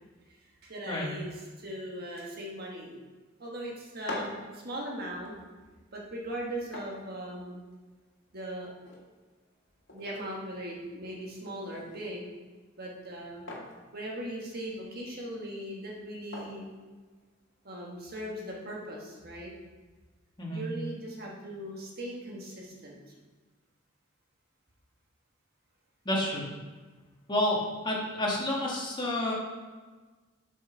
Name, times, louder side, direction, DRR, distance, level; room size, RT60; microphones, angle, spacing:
voice 1, 0.6-1.3 1.6-3.0 3.4-5.3 5.9-7.6 8.3-8.7 9.9-12.3 12.8-13.4 13.9-16.7 17.6-19.5 20.5-23.0, right 1 dB, 55° right, -2 dB, 1.5 m, -39 dB
sound 1, 3.8-17.7, left 1 dB, 75° left, 1.7 m, -48 dB
voice 2, 26.0-26.4 27.3-29.3, left 1 dB, 25° left, -3 dB, 1.5 m, -29 dB
7.7 x 5.4 x 4.5 m, 1.3 s
head